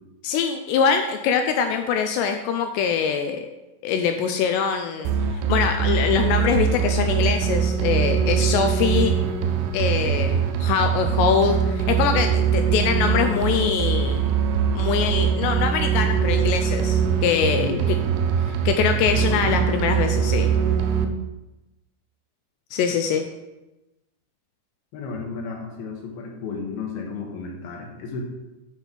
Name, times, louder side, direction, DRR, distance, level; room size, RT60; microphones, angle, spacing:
voice 1, 0.2-3.5 3.8-9.2 9.7-14.3 14.8-17.7 18.7-20.5 22.7-23.3, left 7 dB, 85° left, 6 dB, 2.4 m, -23 dB
sound 1, 5.0-21.0, right 7 dB, 90° right, 2.2 m, -22 dB
voice 2, 17.6-18.1 19.1-19.8 24.9-28.2, left 4 dB, 70° left, 1 dB, 2.6 m, -32 dB
8.0 x 5.6 x 5.8 m, 1.0 s
omnidirectional pair, 5.5 m